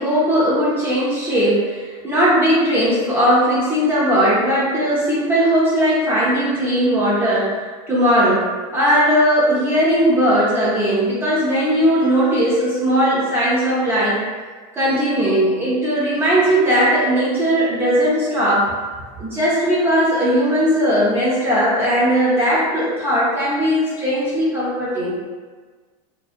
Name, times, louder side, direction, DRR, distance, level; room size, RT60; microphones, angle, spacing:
voice 1, 0.0-7.5 7.9-8.5 8.7-14.2 14.7-18.6 19.2-25.2, equal, 10° right, -8 dB, 0.4 m, -18 dB
2.5 x 2.1 x 2.4 m, 1.4 s
supercardioid pair, 155°, 18 cm